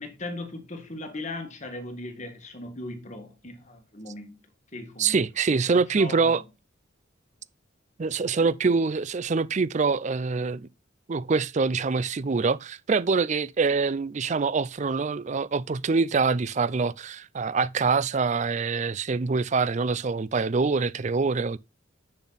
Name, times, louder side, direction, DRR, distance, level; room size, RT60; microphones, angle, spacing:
voice 1, 0.0-4.4 4.7-5.2 5.7-6.4, left 2 dB, 35° left, 2.0 m, -38 dB
voice 2, 5.0-6.4 8.0-10.7 11.1-21.6, right 4 dB, 35° right, 0.4 m, -25 dB
7.9 x 7.0 x 4.1 m
head